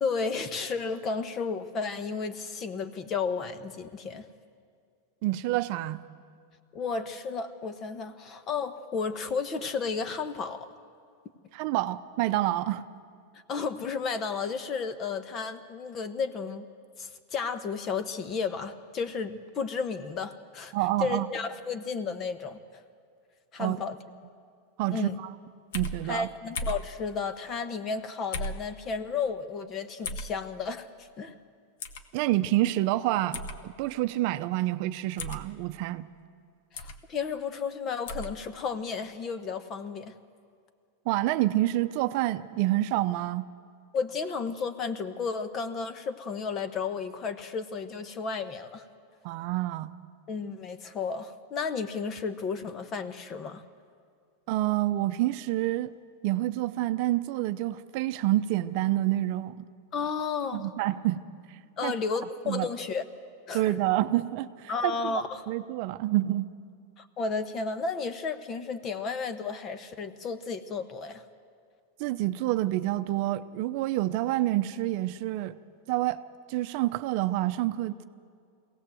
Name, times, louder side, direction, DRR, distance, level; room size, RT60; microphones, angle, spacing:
voice 1, 0.0-4.3 6.7-10.7 13.5-16.7 17.0-20.7 21.0-22.6 23.5-24.0 24.9-25.2 26.1-31.3 36.7-40.1 43.9-48.8 50.3-53.6 59.9-60.7 61.8-63.0 63.5-63.8 64.7-65.5 67.0-71.2, left 5 dB, 30° left, 10 dB, 1.2 m, -33 dB
voice 2, 5.2-6.0 11.5-12.8 20.7-21.3 23.6-23.8 24.8-25.3 25.7-26.3 32.1-36.1 41.1-43.5 49.2-49.9 54.5-55.9 56.2-59.7 60.5-61.2 61.8-61.9 62.5-62.7 63.5-65.1 65.5-66.5 72.0-75.6 75.9-76.2 76.5-78.0, right 15 dB, 55° right, 11 dB, 0.7 m, -28 dB
sound 1, 25.7-26.0 26.6-26.9 28.3-28.6 30.0-30.3 31.8-32.0 33.3-33.6 35.2-35.4 36.8-37.0 38.1-38.3, left 1 dB, 70° left, 1.4 m, -34 dB
22.5 x 17.5 x 7.8 m, 2.2 s
supercardioid pair, 140°, 0 cm